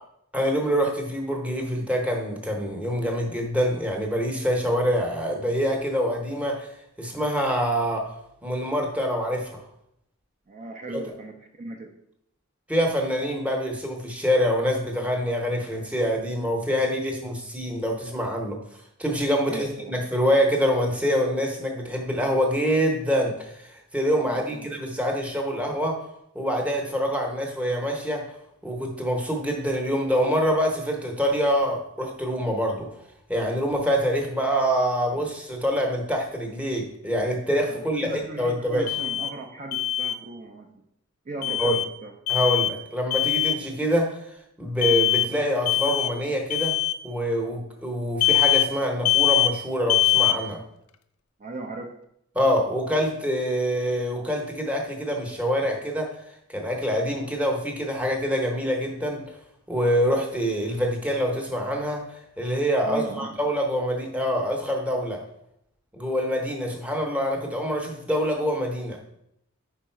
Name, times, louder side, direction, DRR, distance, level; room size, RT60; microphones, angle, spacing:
voice 1, 0.3-6.7 7.0-8.1 8.4-9.6 12.7-18.6 19.0-26.0 26.3-28.2 28.6-32.9 33.3-38.9 41.6-41.8 42.3-44.2 44.6-46.8 47.0-50.6 52.3-56.2 56.5-59.3 59.7-65.2 65.9-69.0, equal, 5° right, 1 dB, 0.8 m, -25 dB
voice 2, 10.5-11.9 19.4-20.0 24.2-24.7 37.7-40.7 41.3-42.1 51.4-51.9 62.8-63.3, right 2 dB, 35° right, 2 dB, 0.4 m, -37 dB
Alarm, 38.9-39.3 39.7-40.2 41.4-41.9 42.3-42.7 43.1-43.6 44.8-45.3 45.7-46.1 46.5-46.9 48.2-48.7 49.0-49.5 49.9-50.4, left 14 dB, 80° left, 0.4 m, -22 dB
5.0 x 4.6 x 4.4 m, 0.78 s
head